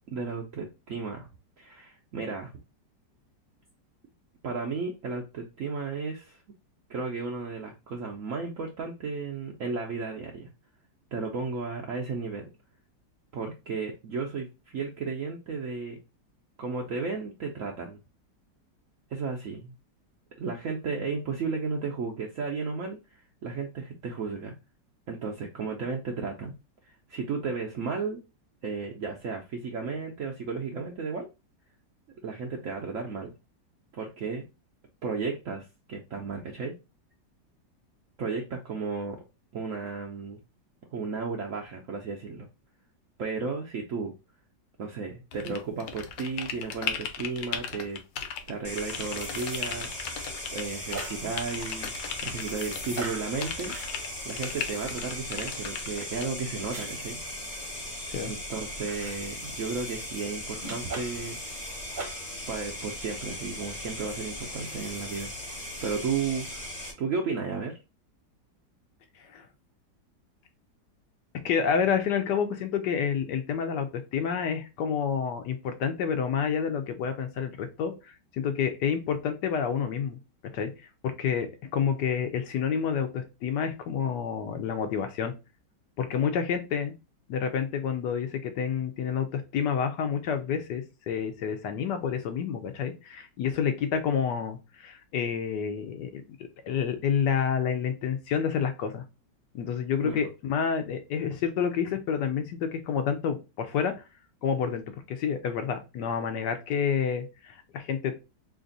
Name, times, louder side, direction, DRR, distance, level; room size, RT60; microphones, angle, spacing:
voice 1, 0.1-1.3 1.6-2.5 4.4-6.4 6.9-10.5 11.1-12.4 13.3-16.0 16.6-18.0 19.1-19.7 20.4-23.0 23.4-24.5 25.1-26.5 26.9-28.2 28.6-31.3 32.2-33.3 33.9-34.4 35.0-36.7 38.2-39.2 39.5-40.4 40.9-42.5 43.2-44.1 44.8-48.0 48.5-50.2 50.5-51.9 52.2-53.7 54.2-57.2 58.2-61.6 62.5-65.3 65.8-66.7 67.0-67.8 100.0-100.2, right 4 dB, 70° right, 1 dB, 0.7 m, -34 dB
sound 1, 45.3-48.5 48.8-50.6 50.9-53.1 53.4-56.3, left 8 dB, 85° left, 1.4 m, -36 dB
sound 2, 48.6-66.9, left 1 dB, 25° left, 0.9 m, -38 dB
sound 3, 50.9-51.3 52.9-53.3 53.7-53.9 56.7-56.9 58.9-59.2 60.6-61.3 61.9-62.3, right 3 dB, 35° right, 0.8 m, -38 dB
voice 2, 71.4-77.9 78.3-80.2 80.4-80.7 81.0-85.3 86.0-86.9 87.3-96.2 96.7-99.0 99.5-103.9 104.4-104.8 105.1-108.2, left 7 dB, 70° left, 7 dB, 1.2 m, -29 dB
3.2 x 2.5 x 3.8 m, 0.27 s
omnidirectional pair, 2.0 m